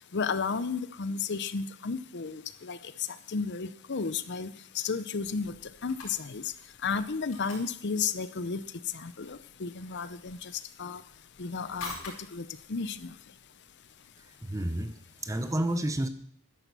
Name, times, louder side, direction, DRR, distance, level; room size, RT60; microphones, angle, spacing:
voice 1, 0.1-2.8 3.3-5.5 5.8-6.4 6.8-8.6 8.9-10.5 10.8-11.0 11.4-11.9 12.3-13.1, left 5 dB, 50° left, 14 dB, 0.7 m, -33 dB
sound 1, 5.2-15.0, left 3 dB, 65° left, 4.9 m, -49 dB
voice 2, 14.2-16.1, right 1 dB, 15° right, 10 dB, 0.7 m, -31 dB
11.5 x 10.5 x 6.9 m, 0.67 s
head